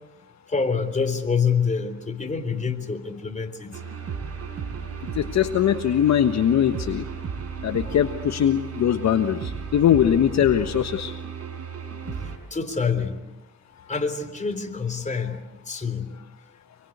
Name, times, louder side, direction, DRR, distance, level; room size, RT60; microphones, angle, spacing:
voice 1, 0.5-3.8 12.5-13.2 13.9-15.4 15.7-16.1, left 5 dB, 25° left, 7 dB, 3.6 m, -26 dB
sound 1, 3.7-12.4, right 6 dB, 55° right, 4.7 m, -34 dB
voice 2, 5.1-7.0 7.6-11.1, left 10 dB, 65° left, 8 dB, 1.4 m, -21 dB
26.5 x 23.0 x 8.2 m, 0.98 s
cardioid pair, 90°, 30 cm